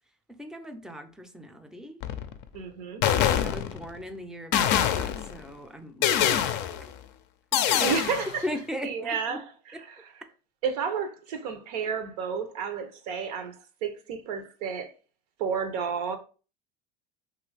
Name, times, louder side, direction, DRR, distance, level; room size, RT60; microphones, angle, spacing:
voice 1, 0.3-2.0 3.4-6.7 7.5-8.0 8.4-9.4, equal, 5° right, 0.4 m, -38 dB
sound 1, 2.0-2.4 3.0-4.0 4.5-5.4 6.0-6.9 7.5-8.4, left 10 dB, 60° left, 0.4 m, -25 dB
voice 2, 2.5-3.0 7.8-8.4 8.8-10.1 10.6-14.9 15.4-16.2, right 6 dB, 80° right, 0.7 m, -31 dB
2.9 x 2.5 x 3.2 m
supercardioid pair, 90°, 20 cm